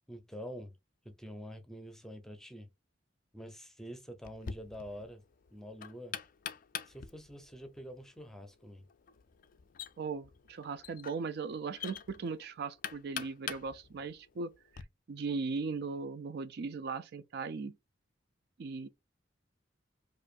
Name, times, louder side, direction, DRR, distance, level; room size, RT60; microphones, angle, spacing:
voice 1, 0.1-0.7 1.0-2.7 3.3-5.2 5.5-6.2 6.9-8.9, equal, 5° left, 0.7 m, -46 dB
Knock, 4.2-14.8, left 8 dB, 45° left, 0.4 m, -46 dB
voice 2, 10.0-17.7 18.6-18.9, right 4 dB, 55° right, 0.4 m, -38 dB
4.8 x 2.5 x 2.4 m
head